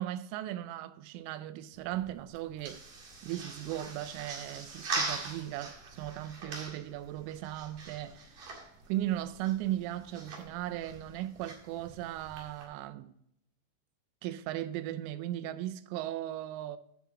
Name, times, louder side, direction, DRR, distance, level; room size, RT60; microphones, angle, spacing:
voice 1, 0.0-2.8 3.2-8.3 8.9-13.1 14.2-16.8, right 13 dB, 90° right, 3.2 m, -37 dB
sound 1, 1.7-12.6, right 3 dB, 50° right, 3.1 m, -42 dB
10.0 x 7.5 x 3.6 m
omnidirectional pair, 5.6 m